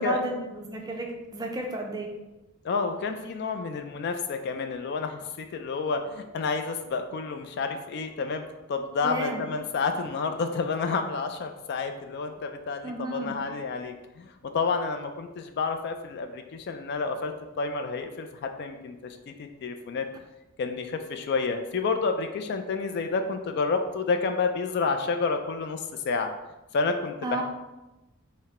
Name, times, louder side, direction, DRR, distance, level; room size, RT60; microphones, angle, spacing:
voice 1, 0.0-2.1 9.0-9.4 12.8-13.4 27.2-27.4, right 2 dB, 20° right, 2 dB, 0.4 m, -32 dB
voice 2, 2.6-8.4 8.7-20.1 20.6-26.3 26.7-27.4, left 4 dB, 50° left, 6 dB, 0.3 m, -30 dB
4.0 x 2.1 x 4.1 m, 1.0 s
head